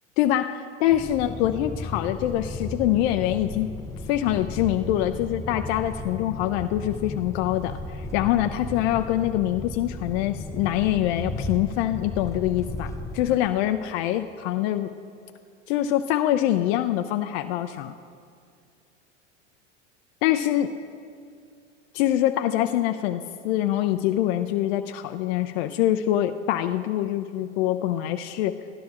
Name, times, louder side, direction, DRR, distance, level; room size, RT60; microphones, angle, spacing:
voice 1, 0.2-3.7 4.1-14.9 15.7-17.9 20.2-20.8 21.9-28.6, left 13 dB, 60° left, 8 dB, 0.5 m, -24 dB
sound 1, 0.9-13.4, left 2 dB, 10° left, 0.6 m, -35 dB
17.0 x 12.5 x 2.4 m, 2.3 s
hypercardioid pair, 95°, 37 cm